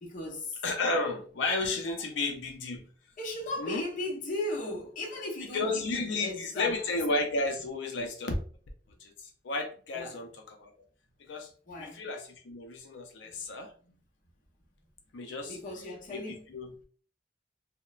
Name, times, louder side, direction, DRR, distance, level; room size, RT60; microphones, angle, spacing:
voice 1, 0.0-0.6 3.2-6.8 9.9-10.2 11.7-12.0 13.2-13.3 13.8-13.9 15.4-16.4, left 2 dB, 45° left, 0.7 m, -37 dB
voice 2, 0.6-2.9 3.6-3.8 5.5-8.3 9.0-10.7 11.3-11.5 11.8-13.7 15.1-15.6 16.1-16.2 16.5-16.7, left 2 dB, 80° left, 0.5 m, -32 dB
2.9 x 2.0 x 2.3 m
head